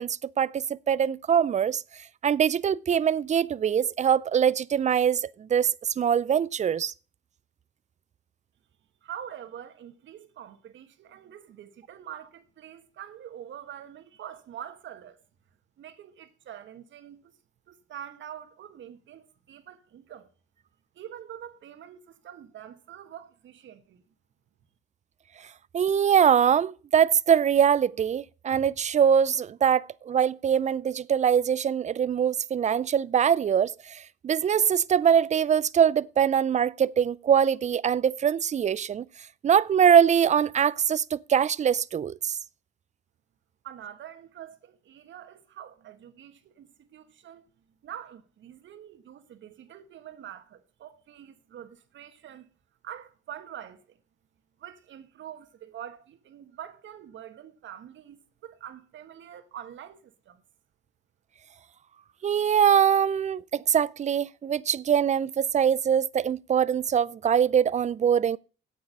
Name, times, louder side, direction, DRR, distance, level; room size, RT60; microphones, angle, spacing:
voice 1, 0.0-6.9 25.7-39.0 39.4-42.4 62.2-68.4, right 8 dB, 35° right, 0.5 m, -23 dB
voice 2, 9.0-15.2 15.8-17.3 17.7-20.3 20.9-24.0 43.6-52.5 52.8-54.0 54.6-60.4, right 10 dB, 70° right, 1.5 m, -45 dB
8.4 x 8.3 x 6.6 m
cardioid pair, 90°, 20 cm